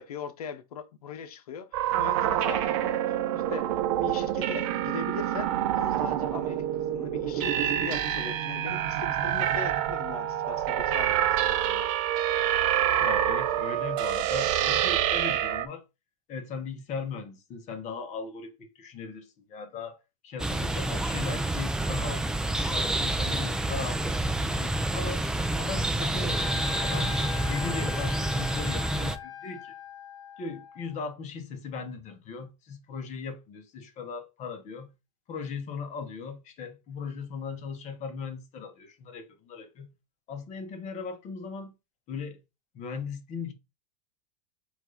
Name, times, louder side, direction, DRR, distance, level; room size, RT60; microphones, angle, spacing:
voice 1, 0.0-3.7 4.0-11.9, left 6 dB, 85° left, 0.8 m, -40 dB
sound 1, 1.7-15.7, right 11 dB, 60° right, 0.8 m, -27 dB
voice 2, 13.0-15.8 16.3-20.0 20.2-22.3 22.6-25.2 25.6-27.2 27.5-29.8 30.4-34.9 35.3-39.9 40.3-41.7 42.1-42.4 42.7-43.5, left 5 dB, 40° left, 1.1 m, -38 dB
sound 2, 20.4-29.2, right 1 dB, 5° right, 0.4 m, -28 dB
Trumpet, 26.3-31.0, left 9 dB, 20° left, 1.7 m, -41 dB
4.5 x 2.6 x 4.0 m
hypercardioid pair, 110°, 19 cm